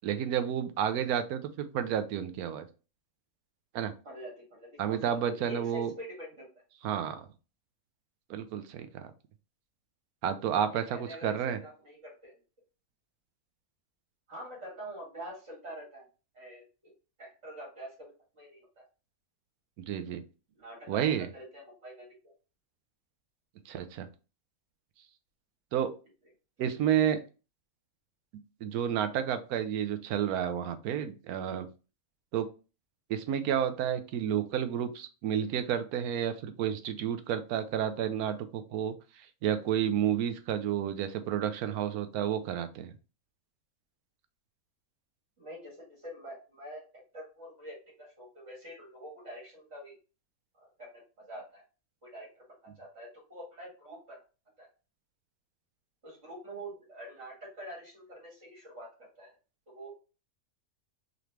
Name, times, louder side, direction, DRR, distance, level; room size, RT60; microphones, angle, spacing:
voice 1, 0.0-2.7 3.7-3.9 4.8-5.9 6.8-7.3 8.3-9.1 10.2-11.6 19.9-20.2 20.9-21.3 23.7-24.1 25.7-25.9 26.6-27.2 28.6-31.7 32.3-32.5 33.1-38.9 39.4-42.9, right 9 dB, 80° right, 10 dB, 1.1 m, -30 dB
voice 2, 4.0-6.5 10.9-12.3 14.3-16.1 16.3-16.9 17.2-18.8 20.5-22.3 45.4-46.9 47.1-50.0 50.6-51.0 51.3-51.6 52.0-54.2 54.6-54.7 56.0-59.3 59.7-59.9, right 1 dB, 55° right, -4 dB, 2.1 m, -46 dB
3.8 x 3.0 x 3.3 m, 0.33 s
omnidirectional pair, 1.5 m